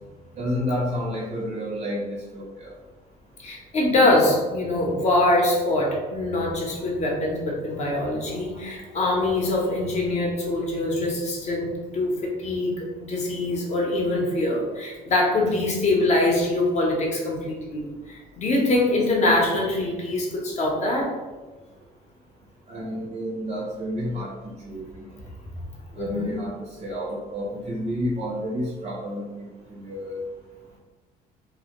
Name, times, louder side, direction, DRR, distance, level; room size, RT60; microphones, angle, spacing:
voice 1, 0.4-2.7 22.7-25.1 26.0-26.5 26.8-30.2, equal, 40° right, -3 dB, 0.5 m, -30 dB
voice 2, 3.4-21.1 25.9-26.4, left 2 dB, 40° left, -1 dB, 0.7 m, -24 dB
2.2 x 2.1 x 2.8 m, 1.2 s
cardioid pair, 110°, 17 cm